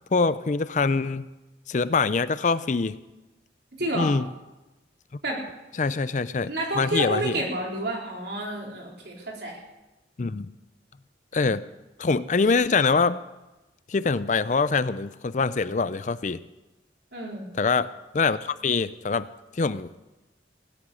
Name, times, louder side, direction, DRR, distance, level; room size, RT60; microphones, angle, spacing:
voice 1, 0.1-1.3 1.7-3.0 3.9-4.3 5.8-7.4 10.2-10.5 11.3-11.6 12.0-13.2 13.9-16.4 17.6-19.3 19.5-20.0, left 4 dB, 40° left, 15 dB, 0.5 m, -24 dB
voice 2, 3.7-4.1 5.2-5.5 6.5-9.6 17.1-17.5, right 1 dB, 65° right, -1 dB, 3.8 m, -30 dB
17.5 x 7.8 x 9.8 m, 1.0 s
head